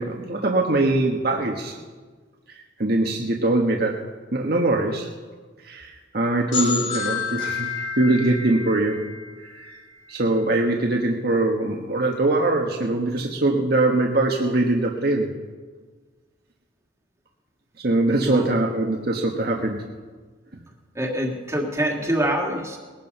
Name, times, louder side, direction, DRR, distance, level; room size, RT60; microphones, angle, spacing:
voice 1, 0.0-1.8 2.5-4.0 4.3-5.1 5.6-9.1 9.5-9.8 10.1-15.3 17.8-19.9, right 2 dB, 55° right, 0 dB, 1.4 m, -22 dB
sound 1, 6.5-10.2, left 5 dB, 80° left, 4.4 m, -30 dB
voice 2, 20.9-22.8, right 1 dB, 15° right, 1 dB, 2.1 m, -25 dB
20.0 x 12.0 x 5.5 m, 1.4 s
head